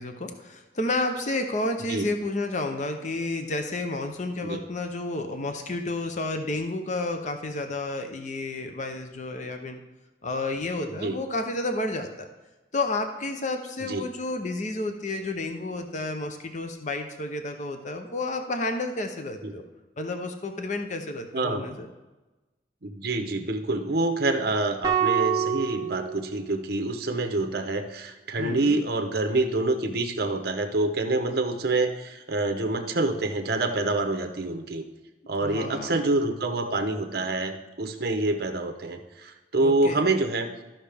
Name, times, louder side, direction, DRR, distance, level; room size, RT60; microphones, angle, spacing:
voice 1, 0.0-9.8 10.2-12.3 12.7-19.6 20.0-21.9 28.4-28.8 35.4-36.0 39.6-40.1, left 2 dB, 40° left, 6 dB, 0.7 m, -31 dB
voice 2, 10.9-11.2 13.8-14.0 19.4-19.5 21.3-21.6 22.8-34.8 35.3-40.5, right 2 dB, 55° right, 6 dB, 0.9 m, -27 dB
sound 1, 24.8-27.2, right 8 dB, 20° right, 0.8 m, -27 dB
13.5 x 5.7 x 3.4 m, 1.1 s
head